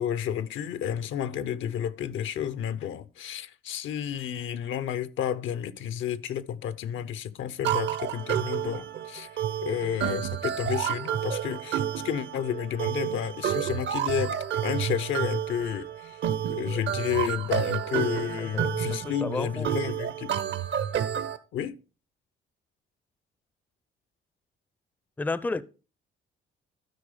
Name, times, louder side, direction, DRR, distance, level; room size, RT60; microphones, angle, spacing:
voice 1, 0.0-9.3 9.6-16.2 16.5-20.3 21.5-21.8, left 9 dB, 75° left, 0.7 m, -31 dB
sound 1, 7.6-21.4, right 10 dB, 65° right, 0.8 m, -30 dB
voice 2, 18.4-19.7 25.2-25.6, left 3 dB, 10° left, 0.4 m, -32 dB
12.0 x 4.9 x 4.9 m
cardioid pair, 90°, 20 cm